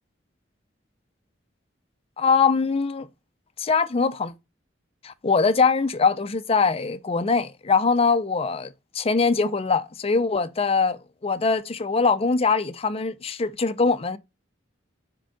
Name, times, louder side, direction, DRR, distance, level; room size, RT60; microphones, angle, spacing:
voice 1, 2.2-3.1 3.6-4.3 5.0-14.2, left 4 dB, 30° left, 0.5 m, -22 dB
5.1 x 4.5 x 5.7 m
head